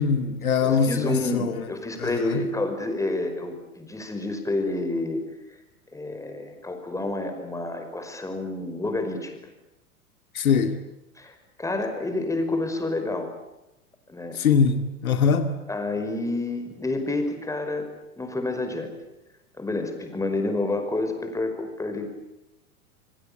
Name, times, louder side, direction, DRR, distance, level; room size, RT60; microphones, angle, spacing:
voice 1, 0.0-1.7 2.0-2.5 10.3-10.8 14.3-15.5, left 6 dB, 70° left, 7 dB, 2.3 m, -22 dB
voice 2, 0.6-5.2 5.9-9.4 11.2-13.3 14.1-14.4 15.7-17.9 18.2-18.9 19.6-22.3, left 2 dB, 5° left, 6 dB, 5.3 m, -29 dB
26.5 x 24.0 x 8.5 m, 0.93 s
figure-of-eight pair, 95°, 44 cm